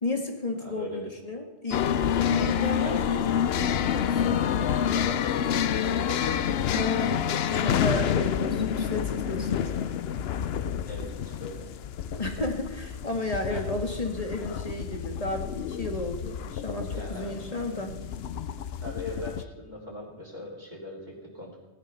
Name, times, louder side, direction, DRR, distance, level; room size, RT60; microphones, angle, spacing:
voice 1, 0.0-3.5 3.9-4.4 6.7-9.9 12.1-18.0, left 2 dB, 30° left, 3 dB, 1.9 m, -33 dB
voice 2, 0.6-1.1 2.8-3.1 4.2-6.8 10.8-11.6 13.5-13.7 16.9-17.3 18.8-21.6, left 1 dB, 35° right, -2 dB, 2.9 m, -40 dB
sound 1, 1.7-19.4, left 9 dB, 60° left, 0.8 m, -28 dB
17.5 x 11.0 x 5.6 m, 1.2 s
omnidirectional pair, 1.3 m